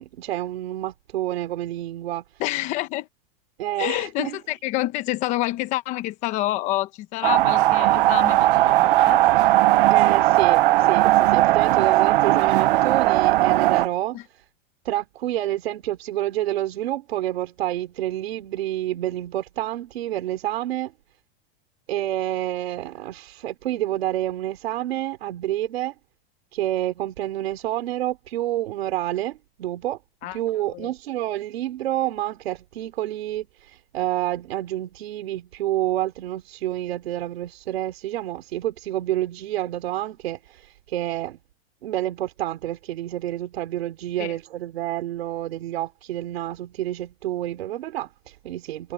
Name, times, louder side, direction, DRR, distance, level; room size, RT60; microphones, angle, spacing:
voice 1, 0.0-2.5 3.6-4.4 9.9-14.2 14.8-20.9 21.9-25.9 26.5-30.0 30.3-41.4 41.8-48.9, right 14 dB, 80° right, 3.4 m, -28 dB
voice 2, 2.4-3.1 3.8-9.2 14.1-14.2 30.2-30.4 30.7-30.9 44.2-44.4, left 17 dB, 25° left, 0.8 m, -28 dB
sound 1, 7.2-13.9, right 16 dB, 60° right, 0.6 m, -18 dB
supercardioid pair, 175°, 30 cm